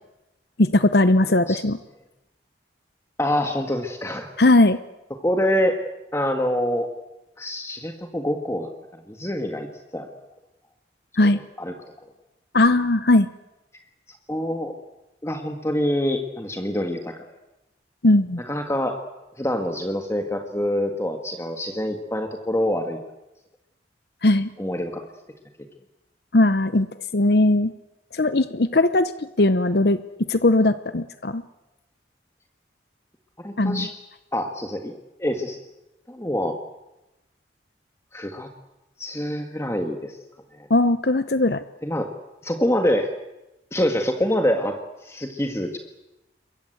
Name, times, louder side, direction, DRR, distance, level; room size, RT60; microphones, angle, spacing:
voice 1, 0.6-1.8 4.4-4.8 11.2-11.4 12.5-13.3 18.0-18.4 24.2-24.5 26.3-26.9 27.1-27.7 28.1-29.1 29.4-30.0 30.3-31.4 33.6-33.9 40.7-41.6, left 2 dB, 60° left, 12 dB, 0.9 m, -18 dB
voice 2, 1.3-1.6 3.2-4.3 5.2-5.8 6.1-6.9 7.4-9.7 9.9-10.1 11.2-11.3 11.6-11.7 14.3-14.8 15.2-17.1 18.5-19.0 19.4-23.0 24.6-25.1 33.4-33.9 34.3-34.9 35.2-35.6 36.1-36.6 38.1-38.5 39.0-40.2 40.5-40.7 41.8-42.1 42.4-43.1 43.7-45.8, left 1 dB, 15° left, 4 dB, 1.8 m, -25 dB
28.5 x 22.5 x 7.9 m, 0.98 s
head